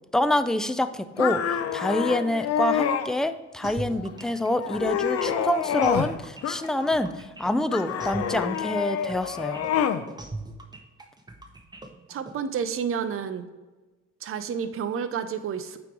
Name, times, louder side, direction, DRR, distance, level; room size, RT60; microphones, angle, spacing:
voice 1, 0.1-9.6, left 1 dB, ahead, 10 dB, 0.3 m, -26 dB
sound 1, 1.2-3.1 3.6-4.1 4.5-6.1 6.4-7.1 7.7-10.0, left 9 dB, 55° left, 0.5 m, -27 dB
sound 2, 3.6-12.3, right 2 dB, 15° right, 0.8 m, -40 dB
voice 2, 12.1-13.5 14.2-15.8, right 7 dB, 45° right, 10 dB, 0.6 m, -30 dB
8.7 x 3.0 x 4.7 m, 1.2 s
cardioid pair, 90°, 30 cm